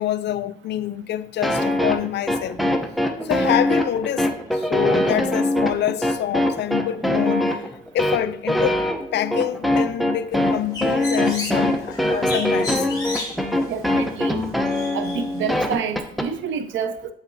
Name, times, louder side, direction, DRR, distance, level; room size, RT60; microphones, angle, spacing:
voice 1, 0.0-2.6 3.2-7.7 7.9-8.8 9.1-12.9, left 11 dB, 60° left, 0.4 m, -26 dB
sound 1, 1.4-16.3, left 1 dB, ahead, 0.6 m, -22 dB
Bird, 10.3-15.7, left 2 dB, 20° left, 2.0 m, -35 dB
voice 2, 13.7-14.5 14.9-17.1, right 7 dB, 75° right, 0.6 m, -28 dB
6.9 x 5.6 x 2.6 m
cardioid pair, 90°, 20 cm